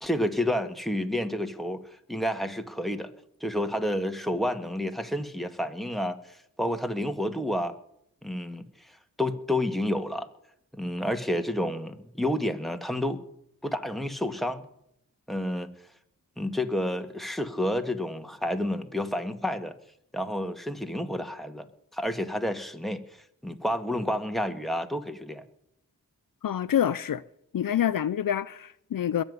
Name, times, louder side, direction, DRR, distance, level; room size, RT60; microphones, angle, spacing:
voice 1, 0.0-1.8 2.1-3.1 3.4-7.8 8.2-8.6 9.2-10.3 10.7-13.2 13.6-14.7 15.3-15.7 16.4-19.8 20.1-21.7 21.9-23.0 23.4-25.4, left 1 dB, ahead, 1.8 m, -30 dB
voice 2, 26.4-27.2 27.5-29.2, left 10 dB, 70° left, 0.5 m, -27 dB
22.0 x 8.2 x 5.4 m
cardioid pair, 40°, 35 cm